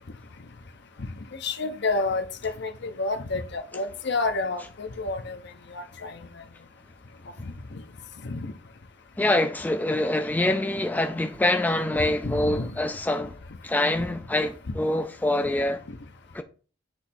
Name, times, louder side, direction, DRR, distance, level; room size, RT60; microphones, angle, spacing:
voice 1, 1.4-5.4 5.7-6.2 7.4-7.5 8.2-8.5 12.2-12.7, left 3 dB, 60° left, 0.8 m, -29 dB
voice 2, 9.2-13.4 13.6-15.8 16.3-16.4, left 1 dB, 10° left, 0.4 m, -25 dB
8.0 x 3.2 x 4.2 m
head